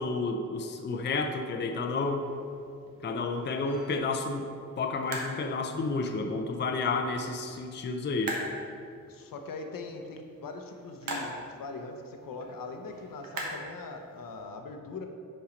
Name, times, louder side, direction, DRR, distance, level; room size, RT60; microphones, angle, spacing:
voice 1, 0.0-2.3 3.0-4.5 4.8-8.4, left 3 dB, 35° left, 4 dB, 0.5 m, -31 dB
sound 1, 1.2-14.4, right 1 dB, 85° right, 1.2 m, -44 dB
voice 2, 9.1-15.1, left 3 dB, 80° left, 4 dB, 0.8 m, -41 dB
5.7 x 5.4 x 5.1 m, 2.4 s
wide cardioid pair, 130°, 33 cm